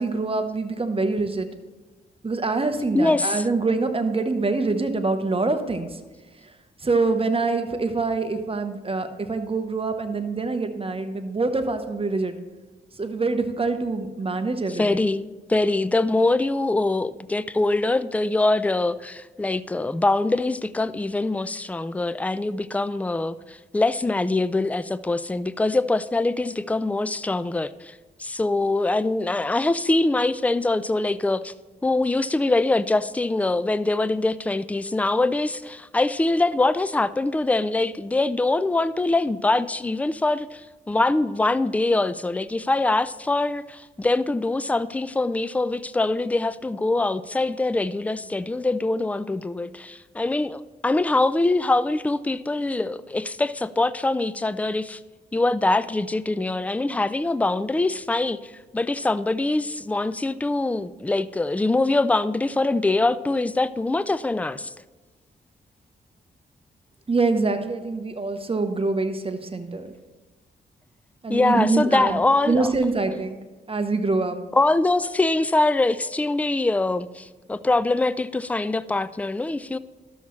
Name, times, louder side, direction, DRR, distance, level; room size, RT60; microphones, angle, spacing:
voice 1, 0.0-1.5 2.2-6.0 6.4-6.5 6.8-12.3 13.0-15.1 67.1-69.9 71.2-72.2 72.5-73.4 73.7-74.4, right 3 dB, 30° right, 1.0 m, -25 dB
voice 2, 2.9-3.4 14.7-27.9 28.2-31.5 31.8-55.0 55.3-64.7 71.3-72.8 74.5-79.8, left 2 dB, 5° left, 0.3 m, -23 dB
12.5 x 7.1 x 3.2 m
cardioid pair, 65°, 20 cm